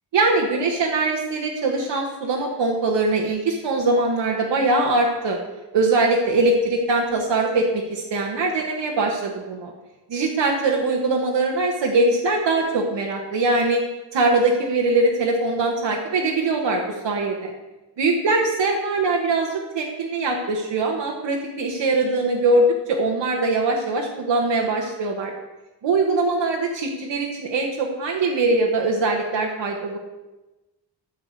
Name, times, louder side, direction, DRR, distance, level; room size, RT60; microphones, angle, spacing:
voice 1, 0.1-5.4 5.7-9.7 10.1-13.8 14.1-17.5 18.0-25.3 25.8-30.0, right 2 dB, 85° right, 0 dB, 1.4 m, -22 dB
13.5 x 4.9 x 8.2 m, 1.1 s
wide cardioid pair, 175°, 42 cm